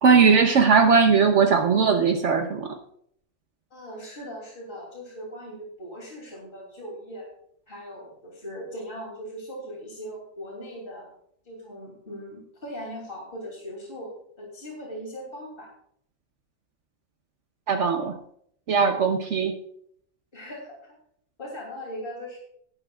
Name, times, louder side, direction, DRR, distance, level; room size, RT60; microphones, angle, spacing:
voice 1, 0.0-2.8 17.7-18.2 18.7-19.5, right 5 dB, 65° right, 4 dB, 1.2 m, -19 dB
voice 2, 3.7-7.3 7.7-11.1 11.4-14.1 14.4-15.7 18.9-19.0 20.3-20.8 21.4-22.4, equal, 45° left, -2 dB, 3.2 m, -39 dB
17.5 x 10.5 x 2.4 m, 0.68 s
omnidirectional pair, 1.4 m